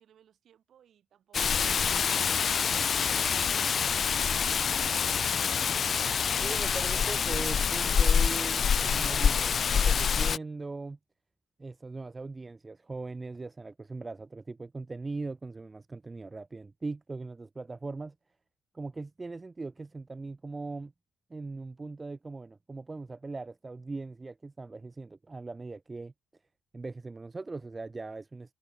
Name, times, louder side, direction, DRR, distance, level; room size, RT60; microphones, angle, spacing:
voice 1, 0.0-1.8 2.3-4.1 4.4-5.6, right 9 dB, 60° right, 7.4 m, -60 dB
Rain, 1.3-10.4, left 7 dB, 45° left, 0.3 m, -26 dB
voice 2, 6.4-11.0 11.6-18.1 18.7-20.9 21.3-26.1 26.7-28.5, right 3 dB, 20° right, 1.2 m, -40 dB
cardioid pair, 125°, 0 cm